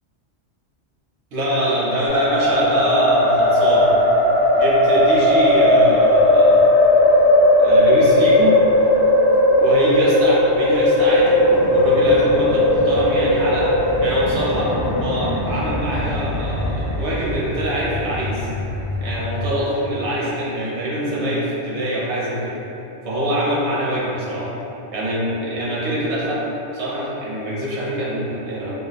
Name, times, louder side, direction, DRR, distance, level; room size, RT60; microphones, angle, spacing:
voice 1, 1.3-3.9 4.6-6.6 7.6-8.6 9.6-14.7 15.0-18.5 19.0-22.6 23.0-24.5 24.9-26.4 26.7-28.7, equal, 80° right, -6 dB, 1.1 m, -24 dB
sound 1, 2.1-19.5, left 1 dB, 30° left, 0.4 m, -17 dB
3.4 x 2.7 x 2.4 m, 2.9 s
omnidirectional pair, 1.1 m